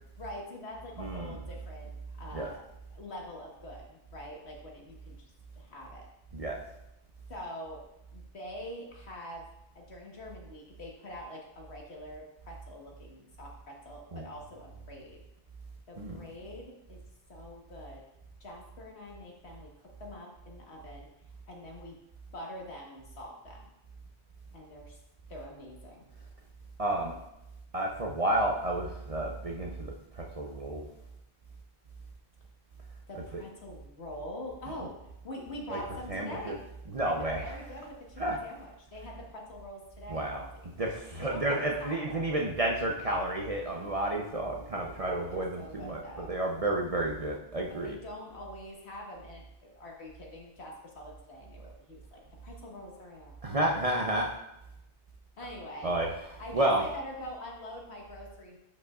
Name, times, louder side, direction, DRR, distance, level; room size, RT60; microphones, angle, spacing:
voice 1, 0.2-1.9 2.2-2.6 2.9-5.3 5.6-6.1 7.3-7.8 8.1-9.4 9.7-15.2 15.9-17.0 17.3-18.0 18.4-19.7 20.0-21.1 21.5-22.0 22.3-23.6 24.5-25.0 25.3-26.0 33.1-35.0 35.2-36.6 37.1-40.7 41.2-42.2 44.7-46.3 47.7-53.8 55.4-55.9 56.4-58.6, left 1 dB, 65° left, -1 dB, 1.7 m, -44 dB
voice 2, 1.0-1.3 2.3-2.5 6.3-6.6 14.1-14.2 16.0-16.2 26.8-27.1 27.7-30.9 35.7-35.8 36.1-36.5 36.9-37.6 38.2-38.4 40.1-40.4 40.8-47.9 53.4-54.3 55.8-56.1 56.5-56.8, right 1 dB, 35° right, -1 dB, 0.7 m, -31 dB
11.0 x 5.4 x 2.4 m, 0.88 s
omnidirectional pair, 1.2 m